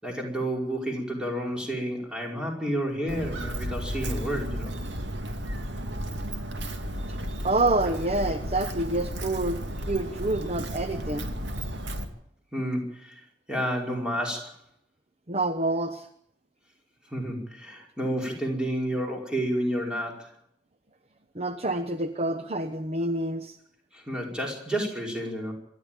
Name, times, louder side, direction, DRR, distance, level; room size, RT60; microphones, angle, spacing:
voice 1, 0.0-4.8 12.5-14.6 17.1-20.3 23.9-25.5, equal, 5° right, 0 dB, 5.1 m, -30 dB
Walk footsteps, 3.1-12.0, equal, 65° right, 2.4 m, -33 dB
voice 2, 7.4-9.6 9.9-11.3 15.3-16.1 21.3-23.6, right 2 dB, 35° right, 8 dB, 0.9 m, -27 dB
26.0 x 11.5 x 9.1 m, 0.72 s
head